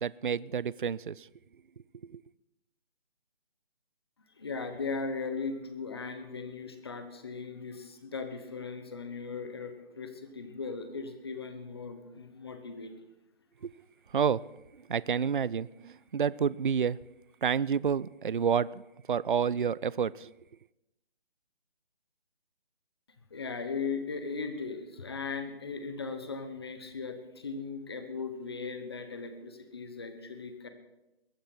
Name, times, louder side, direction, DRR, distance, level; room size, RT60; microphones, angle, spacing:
voice 1, 0.0-1.3 2.0-2.2 13.6-13.7 14.1-14.4 14.9-17.0 17.4-18.8 19.1-20.3, right 7 dB, 55° right, 21 dB, 0.4 m, -29 dB
voice 2, 4.4-12.9 23.3-30.7, left 4 dB, 25° left, 8 dB, 1.1 m, -38 dB
22.0 x 9.5 x 4.3 m, 0.94 s
hypercardioid pair, 175°, 31 cm